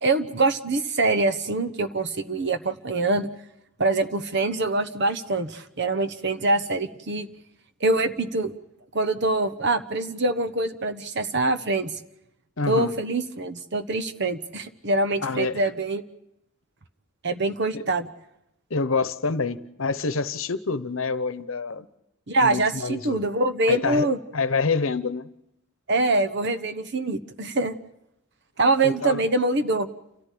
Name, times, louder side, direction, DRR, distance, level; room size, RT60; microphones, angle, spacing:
voice 1, 0.0-3.3 3.8-7.3 7.8-8.5 8.9-12.0 12.7-16.0 17.2-18.1 22.3-24.2 25.9-27.8 28.6-29.9, right 2 dB, 55° right, 10 dB, 1.2 m, -24 dB
voice 2, 12.6-12.9 15.2-15.6 17.7-17.8 18.7-21.9 22.4-23.2 23.7-24.1 24.3-25.3 28.8-29.2, left 4 dB, 70° left, 13 dB, 1.0 m, -27 dB
29.5 x 14.0 x 8.5 m, 0.84 s
head